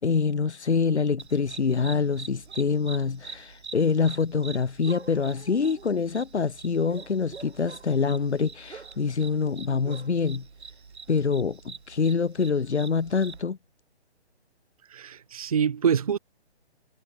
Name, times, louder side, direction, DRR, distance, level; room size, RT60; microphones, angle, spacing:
voice 1, 0.0-10.5 11.1-13.6, left 5 dB, 80° left, 4.0 m, -25 dB
sound 1, 1.2-13.4, right 5 dB, 75° right, 5.5 m, -45 dB
voice 2, 14.9-16.2, right 7 dB, 35° right, 0.6 m, -25 dB
hypercardioid pair, 165°, 33 cm